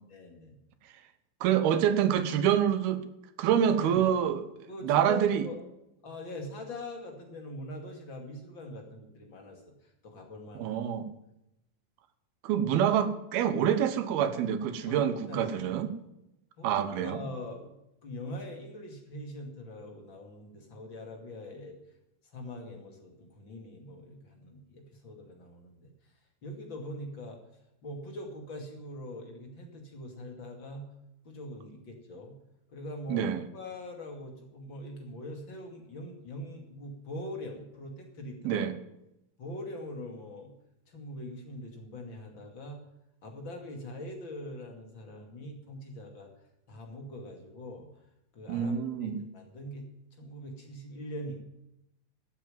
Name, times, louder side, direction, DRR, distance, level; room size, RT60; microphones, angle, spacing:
voice 1, 0.1-0.6 3.8-4.1 4.7-5.6 6.0-9.6 10.0-10.8 14.9-15.9 16.6-17.7 18.0-21.8 22.3-25.9 26.4-27.4 27.8-30.8 31.2-32.3 32.7-33.3 33.5-38.6 39.4-40.5 40.9-42.8 43.2-46.3 46.7-47.9 48.3-49.9 50.2-51.4, left 1 dB, 35° left, 2 dB, 2.6 m, -42 dB
voice 2, 1.4-3.0 3.4-5.4 10.6-11.1 12.4-15.9 16.6-17.2 33.1-33.5 38.4-38.7 48.5-49.2, right 9 dB, 90° right, 11 dB, 3.1 m, -27 dB
14.0 x 7.6 x 9.2 m, 0.86 s
omnidirectional pair, 4.3 m